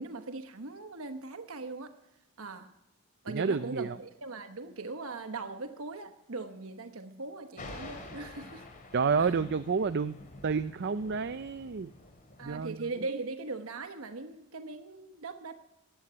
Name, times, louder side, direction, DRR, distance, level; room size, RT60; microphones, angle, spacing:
voice 1, 0.0-1.9 2.4-2.7 3.2-8.6 9.2-9.3 12.4-15.5, right 3 dB, 65° right, 8 dB, 1.1 m, -40 dB
voice 2, 3.3-4.0 8.9-10.2 10.4-11.9 12.4-12.9, right 5 dB, 50° right, 12 dB, 0.5 m, -29 dB
Thunder, 7.6-12.6, left 2 dB, 35° left, 3.0 m, -48 dB
14.5 x 10.5 x 9.6 m, 0.93 s
head